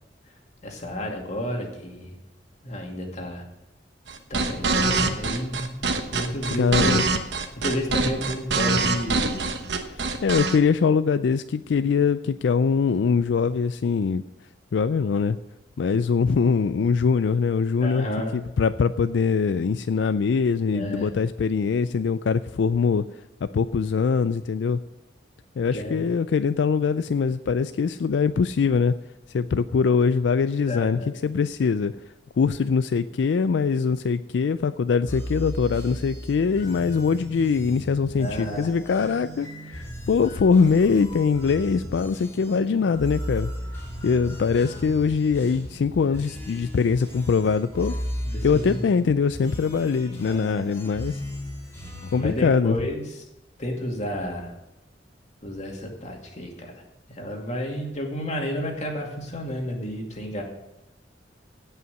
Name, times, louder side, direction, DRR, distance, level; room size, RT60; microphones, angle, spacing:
voice 1, 0.6-2.1 2.6-3.4 4.3-5.8 6.1-7.0 7.6-9.5 17.8-18.4 20.7-21.1 25.7-26.0 30.7-31.1 38.2-38.7 46.1-46.2 48.2-48.9 50.2-50.6 52.1-53.2 53.6-54.5 55.4-56.7 57.1-60.4, equal, 40° left, 1 dB, 2.3 m, -31 dB
sound 1, 4.1-10.6, right 3 dB, 75° right, 1.1 m, -24 dB
voice 2, 6.6-7.0 9.9-14.2 14.7-15.4 15.8-18.1 18.3-23.0 23.4-24.8 25.6-28.9 29.3-32.0 32.4-43.5 44.0-47.9 48.4-51.2 52.1-52.8, left 5 dB, 80° left, 12 dB, 0.4 m, -22 dB
sound 2, 35.1-52.3, equal, 15° left, 3.1 m, -36 dB
16.5 x 5.7 x 6.4 m, 0.94 s
head